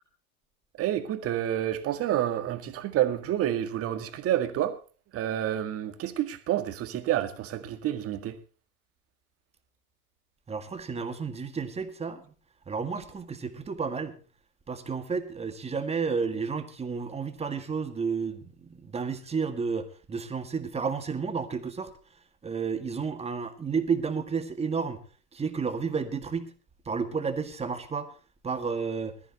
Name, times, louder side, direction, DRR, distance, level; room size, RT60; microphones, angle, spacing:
voice 1, 0.8-4.8 5.1-8.4, right 12 dB, 30° right, 2.0 m, -29 dB
voice 2, 10.5-12.3 12.7-14.1 14.7-21.9 22.4-25.0 25.3-26.5 26.9-28.1 28.4-29.1, right 5 dB, 15° right, 1.8 m, -31 dB
20.5 x 14.0 x 2.9 m
hypercardioid pair, 110°, 45 cm